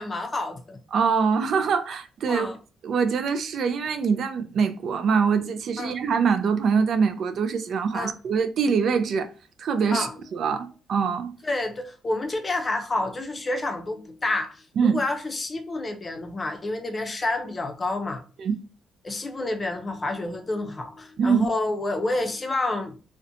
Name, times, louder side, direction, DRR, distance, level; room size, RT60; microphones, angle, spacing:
voice 1, 0.0-0.8 2.3-2.6 5.8-5.9 7.9-8.1 9.9-10.1 11.4-18.2 19.0-23.0, left 2 dB, 30° left, 0.5 m, -29 dB
voice 2, 0.9-2.5 2.8-9.3 9.6-11.3 14.8-15.0 18.4-18.6 21.2-21.5, right 6 dB, 65° right, 0.3 m, -24 dB
2.5 x 2.1 x 2.7 m
cardioid pair, 90°, 0 cm